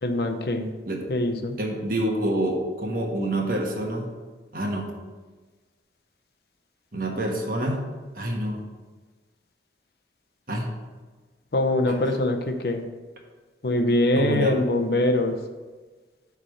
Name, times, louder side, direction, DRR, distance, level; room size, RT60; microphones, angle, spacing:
voice 1, 0.0-0.7 1.1-1.6 11.5-12.8 13.6-15.4, left 1 dB, 60° left, 6 dB, 0.7 m, -23 dB
voice 2, 1.6-4.1 4.5-5.0 6.9-7.8 8.2-8.6 10.5-10.7 11.9-12.0 14.1-14.6, right 1 dB, 50° right, 1 dB, 1.3 m, -27 dB
8.4 x 3.5 x 6.3 m, 1.3 s
head